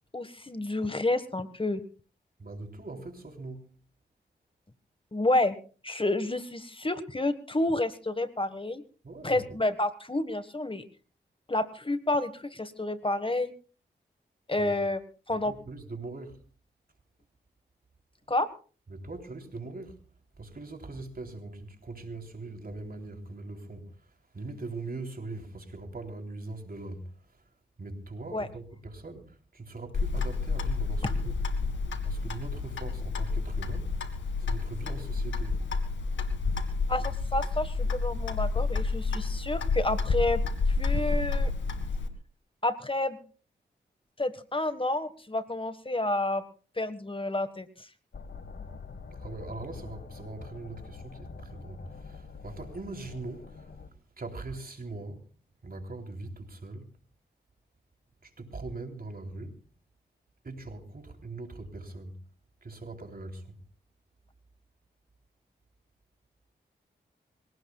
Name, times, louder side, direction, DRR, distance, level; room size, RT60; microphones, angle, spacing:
voice 1, 0.1-1.8 5.1-5.6 5.8-8.8 9.2-10.8 11.5-13.5 14.5-15.0 15.3-15.5 18.3-18.5 28.3-28.5 36.9-40.4 40.8-41.5 42.6-43.2 44.2-46.4 46.8-47.7, left 2 dB, 30° left, 1.5 m, -29 dB
voice 2, 2.4-3.7 9.0-9.5 14.6-14.8 15.3-16.4 18.9-20.0 20.4-27.5 27.8-31.4 32.0-35.7 36.5-36.7 49.1-55.3 55.6-56.9 58.2-59.6 60.4-62.2 62.6-63.6, right 2 dB, 50° right, 3.6 m, -41 dB
Clock, 29.9-42.1, left 4 dB, 85° left, 2.0 m, -30 dB
sound 1, 48.1-53.9, left 4 dB, 65° left, 1.6 m, -45 dB
25.5 x 17.5 x 2.4 m
cardioid pair, 40°, 19 cm